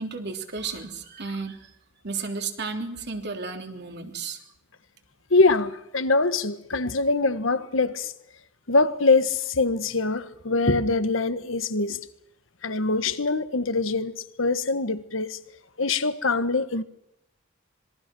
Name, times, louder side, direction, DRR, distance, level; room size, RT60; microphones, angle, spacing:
voice 1, 0.0-1.6 2.0-4.4, right 4 dB, 55° right, 3.2 m, -33 dB
voice 2, 5.3-8.1 8.7-12.0 12.6-15.4 15.8-16.8, left 3 dB, 70° left, 1.4 m, -23 dB
26.5 x 22.5 x 6.2 m
head